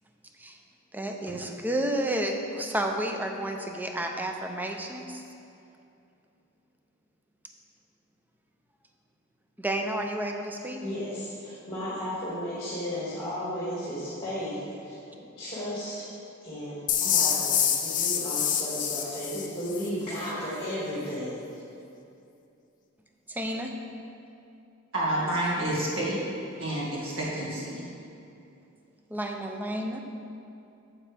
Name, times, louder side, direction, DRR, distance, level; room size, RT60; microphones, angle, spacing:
voice 1, 0.9-5.2 9.6-10.8 23.3-23.7 29.1-30.0, right 1 dB, 10° right, 3 dB, 0.5 m, -31 dB
voice 2, 10.8-15.9 16.4-21.4, equal, 20° left, -10 dB, 2.0 m, -34 dB
sound 1, 16.9-19.9, left 8 dB, 40° left, 0.6 m, -26 dB
voice 3, 24.9-26.2 26.6-27.8, right 1 dB, 65° right, -7 dB, 1.9 m, -29 dB
9.1 x 7.2 x 3.4 m, 2.7 s
head